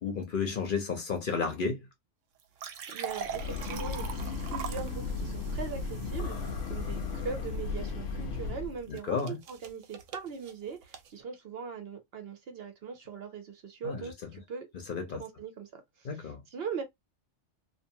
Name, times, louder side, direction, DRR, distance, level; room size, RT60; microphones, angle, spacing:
voice 1, 0.0-1.8 8.9-9.4 13.8-14.1 14.9-15.2 16.0-16.4, left 5 dB, 50° left, 0.8 m, -32 dB
soda pour into plastic cups, 2.4-7.5 9.0-11.1, right 7 dB, 85° right, 1.0 m, -42 dB
voice 2, 2.9-14.7 15.1-16.8, right 5 dB, 60° right, 0.8 m, -41 dB
Breathing / Train, 3.1-8.9, left 4 dB, 90° left, 1.0 m, -35 dB
2.5 x 2.4 x 2.6 m
omnidirectional pair, 1.3 m